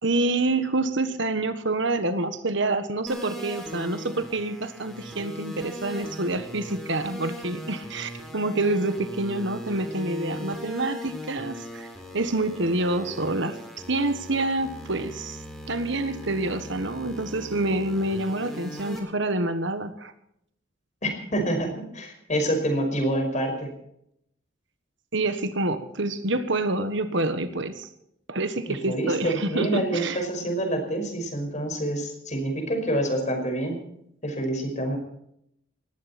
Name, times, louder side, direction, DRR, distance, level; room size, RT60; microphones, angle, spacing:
voice 1, 0.0-11.9 12.1-13.6 13.9-15.4 15.7-20.1 25.1-27.9 28.3-30.2, right 2 dB, 65° right, 10 dB, 1.5 m, -27 dB
sound 1, 3.1-19.0, equal, ahead, 4.2 m, -39 dB
voice 2, 21.0-23.7 28.7-33.8 34.2-35.0, right 1 dB, 40° left, 5 dB, 5.4 m, -27 dB
19.5 x 15.5 x 4.4 m, 0.74 s
head